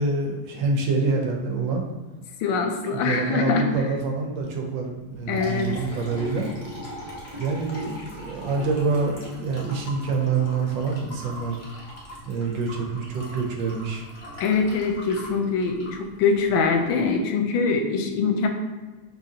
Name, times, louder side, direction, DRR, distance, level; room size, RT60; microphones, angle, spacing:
voice 1, 0.0-1.8 2.9-6.5 7.4-11.6 12.3-14.0, right 4 dB, 80° right, 2 dB, 1.4 m, -26 dB
voice 2, 2.4-3.7 5.3-5.7 14.4-18.5, left 5 dB, 85° left, 4 dB, 1.4 m, -23 dB
Liquid, 5.0-16.9, equal, 35° left, 0.8 m, -40 dB
5.7 x 3.0 x 2.8 m, 1.2 s
omnidirectional pair, 2.1 m